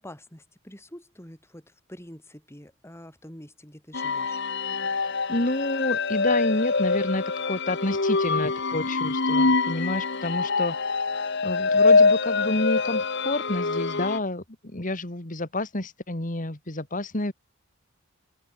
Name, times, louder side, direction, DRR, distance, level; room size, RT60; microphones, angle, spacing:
voice 1, 0.0-4.4, left 1 dB, 15° left, 5.9 m, -46 dB
sound 1, 3.9-14.2, left 4 dB, 60° left, 1.5 m, -24 dB
voice 2, 5.0-10.8 11.4-17.3, left 2 dB, 40° left, 2.3 m, -29 dB
open air
head